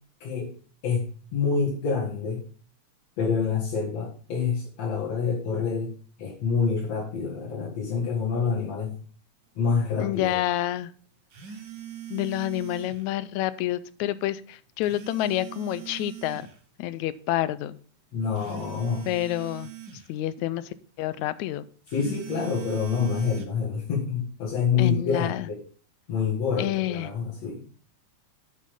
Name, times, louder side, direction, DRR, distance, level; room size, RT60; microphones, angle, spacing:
voice 1, 0.2-0.5 0.8-2.4 3.2-5.9 6.2-9.0 9.6-10.4 18.1-19.1 21.9-25.6 26.1-27.6, left 5 dB, 65° left, -5 dB, 3.0 m, -27 dB
voice 2, 10.0-10.9 12.1-16.5 16.8-17.8 19.1-19.7 20.1-21.7 24.8-25.5 26.6-27.1, left 14 dB, 80° left, 16 dB, 1.9 m, -28 dB
sound 1, 11.3-13.1 14.8-16.5 18.4-20.1 21.9-23.5, right 10 dB, 50° right, 1.5 m, -41 dB
8.4 x 7.4 x 5.4 m, 0.42 s
omnidirectional pair, 3.3 m